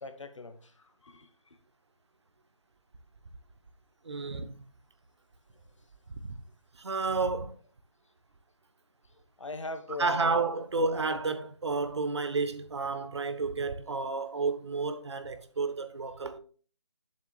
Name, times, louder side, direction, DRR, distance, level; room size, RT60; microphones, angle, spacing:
voice 1, 0.0-0.7 1.0-1.3 9.4-10.5, left 3 dB, 80° left, 1.3 m, -39 dB
voice 2, 4.0-4.7 6.1-6.4 6.7-7.6 10.0-16.4, right 4 dB, 60° right, 1.1 m, -31 dB
8.9 x 7.2 x 2.3 m
hypercardioid pair, 170°, 16 cm